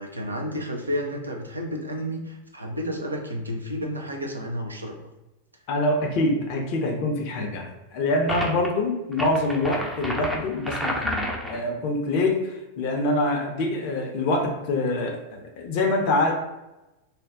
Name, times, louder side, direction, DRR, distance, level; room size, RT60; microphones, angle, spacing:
voice 1, 0.0-5.0, equal, 80° right, 2 dB, 0.4 m, -31 dB
voice 2, 5.7-7.7 7.9-16.3, left 2 dB, 45° left, 1 dB, 0.5 m, -25 dB
sound 1, 8.3-8.7 9.1-11.6, equal, 5° right, 0.4 m, -30 dB
2.5 x 2.2 x 3.5 m, 0.98 s
figure-of-eight pair, 90°, 0 cm